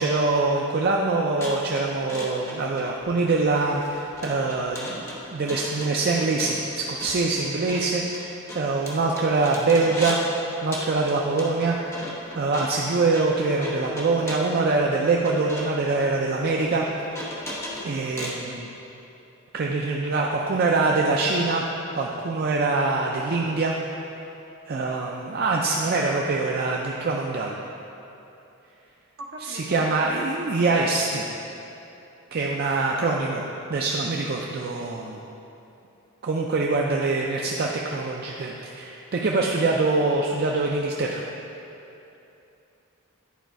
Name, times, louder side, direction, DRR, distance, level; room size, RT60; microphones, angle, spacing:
voice 1, 0.0-10.2 10.6-11.8 12.3-16.9 17.8-18.7 19.5-21.6 22.0-23.8 24.7-27.6 29.4-31.2 32.3-33.4 33.7-35.2 36.2-41.2, right 3 dB, 45° right, -1 dB, 0.4 m, -24 dB
sound 1, 1.4-10.3 10.7-18.4, left 1 dB, 15° left, 0.9 m, -37 dB
voice 2, 29.2-30.2, right 1 dB, 65° right, 0 dB, 0.9 m, -40 dB
10.5 x 4.1 x 4.6 m, 2.9 s
head